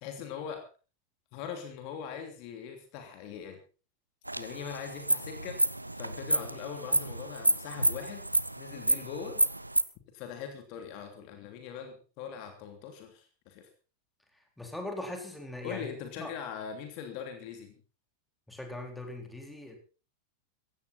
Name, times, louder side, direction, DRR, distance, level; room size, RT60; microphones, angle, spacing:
voice 1, 0.0-0.7 1.3-3.6 4.4-5.6 5.9-8.2 8.6-9.4 10.1-13.7 15.6-17.8, left 7 dB, 45° left, 5 dB, 3.0 m, -41 dB
sound 1, 4.3-9.8, right 1 dB, 85° right, 0.8 m, -30 dB
voice 2, 14.6-15.9 16.2-16.3 18.5-19.8, left 1 dB, 5° left, 3 dB, 4.1 m, -40 dB
16.0 x 16.0 x 4.2 m, 0.35 s
figure-of-eight pair, 90°, 0 cm